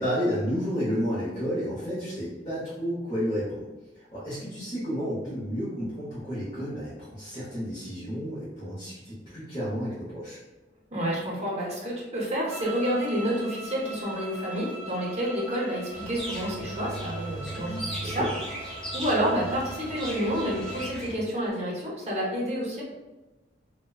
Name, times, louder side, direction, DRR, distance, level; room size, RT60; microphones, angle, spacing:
voice 1, 0.0-3.6 3.9-10.4 17.4-17.8 18.1-18.3, equal, 30° left, -12 dB, 0.9 m, -31 dB
voice 2, 10.9-18.2 18.7-22.8, equal, 35° right, -5 dB, 0.8 m, -29 dB
sound 1, 12.5-20.9, right 2 dB, 75° left, 0.9 m, -41 dB
sound 2, 15.9-21.2, right 1 dB, 5° left, 0.5 m, -37 dB
2.8 x 2.1 x 2.3 m, 1.1 s
head